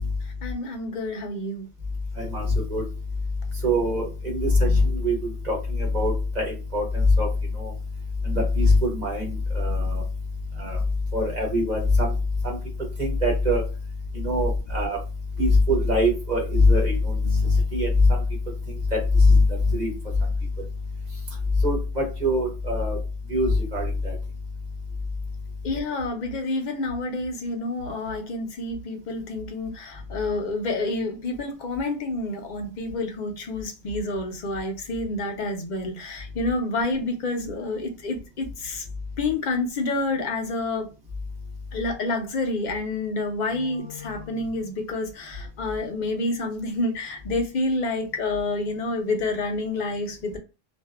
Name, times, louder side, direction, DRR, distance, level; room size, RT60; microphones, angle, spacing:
voice 1, 0.4-1.7 25.6-38.8 39.2-40.9 41.7-50.4, left 2 dB, 50° left, 0.7 m, -28 dB
voice 2, 3.6-7.3 7.6-7.7 8.2-9.3 9.5-10.0 10.6-10.8 11.1-12.1 12.4-12.6 13.0-13.6 14.2-15.0 15.4-18.1 18.9-19.9 21.6-23.0 23.3-24.1, left 2 dB, 40° right, 1.1 m, -22 dB
2.6 x 2.4 x 2.3 m
omnidirectional pair, 1.1 m